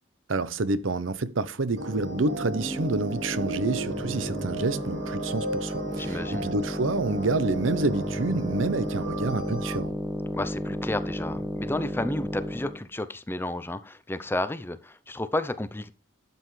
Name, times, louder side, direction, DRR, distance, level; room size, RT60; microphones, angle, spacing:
voice 1, 0.3-9.9, right 2 dB, 80° right, 0.8 m, -28 dB
sound 1, 1.7-12.8, equal, 15° right, 1.4 m, -33 dB
sound 2, 1.8-9.8, right 2 dB, 65° right, 2.3 m, -35 dB
voice 2, 6.0-6.5 10.3-15.9, left 1 dB, 10° left, 0.6 m, -32 dB
12.0 x 8.0 x 3.2 m
head